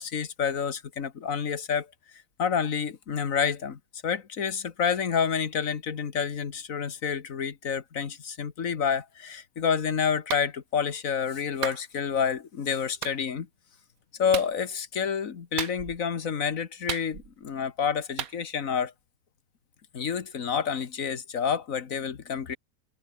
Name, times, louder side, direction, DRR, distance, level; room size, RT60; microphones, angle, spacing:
voice 1, 0.0-1.9 2.4-13.5 14.2-18.9 19.9-22.6, left 7 dB, 55° left, 1.9 m, -29 dB
Clapping, 10.3-10.5 11.6-11.8 13.0-13.2 14.3-14.5 15.6-16.0 16.9-17.4 18.2-18.4, right 10 dB, 65° right, 1.4 m, -34 dB
omnidirectional pair, 1.7 m